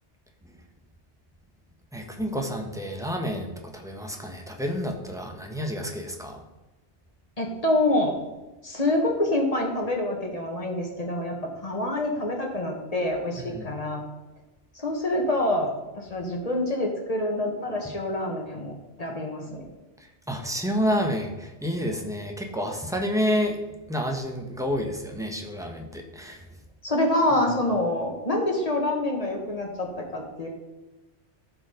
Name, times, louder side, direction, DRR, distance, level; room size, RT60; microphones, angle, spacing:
voice 1, 1.9-6.4 13.4-13.7 20.0-23.6 23.9-26.5 27.3-27.5, equal, 5° right, 2 dB, 1.1 m, -29 dB
voice 2, 7.4-8.2 8.6-11.3 11.6-14.0 14.7-18.7 19.0-19.6 26.8-30.5, left 1 dB, 35° left, 1 dB, 1.6 m, -26 dB
13.0 x 4.9 x 5.1 m, 1.1 s
omnidirectional pair, 1.2 m